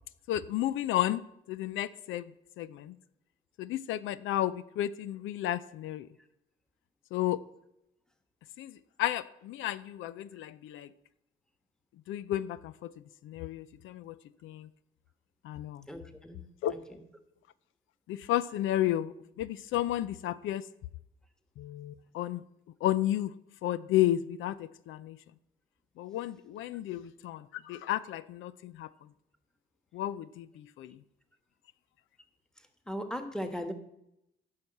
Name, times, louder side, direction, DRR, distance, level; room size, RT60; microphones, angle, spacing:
voice 1, 0.3-1.2 1.5-2.3 2.6-2.9 3.6-6.1 7.1-7.4 8.6-8.7 9.0-10.9 12.1-12.9 13.2-14.1 14.4-14.7 15.4-15.8 16.6-16.7 18.1-20.6 21.6-22.4 22.8-23.3 23.6-25.2 26.0-28.9 29.9-31.0, left 13 dB, 80° left, 16 dB, 0.5 m, -32 dB
voice 2, 15.9-17.0 32.9-33.7, equal, 5° left, 7 dB, 1.4 m, -38 dB
11.0 x 5.6 x 7.8 m, 0.83 s
cardioid pair, 90°, 20 cm